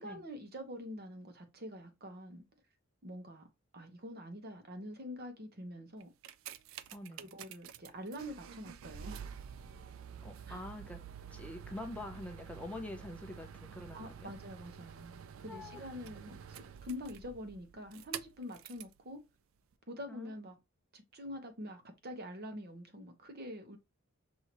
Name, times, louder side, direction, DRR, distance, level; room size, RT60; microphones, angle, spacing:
voice 1, 0.0-2.4 3.0-3.5 3.7-6.1 7.2-9.2 10.5-10.6 13.9-19.2 19.9-20.6 20.9-23.8, left 1 dB, 50° right, 1.0 m, -46 dB
sound 1, 6.0-19.0 19.7-19.8, right 8 dB, 75° right, 0.4 m, -49 dB
voice 2, 6.9-7.4 10.2-11.0 11.3-14.3 15.5-15.9 20.1-20.3, left 1 dB, 5° left, 0.5 m, -45 dB
6.0 x 2.7 x 2.9 m
head